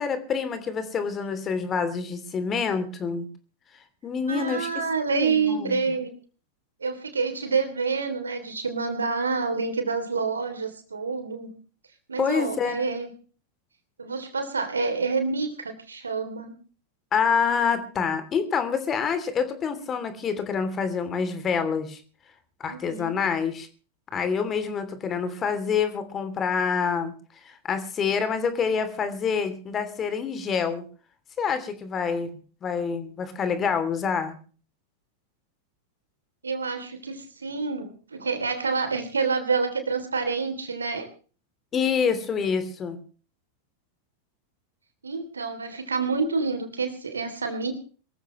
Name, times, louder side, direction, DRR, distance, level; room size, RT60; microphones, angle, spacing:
voice 1, 0.0-3.2 4.0-4.7 5.1-5.7 12.2-12.9 17.1-22.0 22.6-23.7 24.1-27.1 27.4-30.8 31.4-32.3 32.6-34.4 41.7-43.0, left 6 dB, 25° left, 10 dB, 3.1 m, -27 dB
voice 2, 4.3-6.1 6.8-11.5 12.1-13.1 14.0-16.5 22.7-23.1 36.4-41.1 45.0-47.7, right 4 dB, 75° right, 8 dB, 3.2 m, -28 dB
23.5 x 14.5 x 3.2 m, 0.39 s
figure-of-eight pair, 90°, 0 cm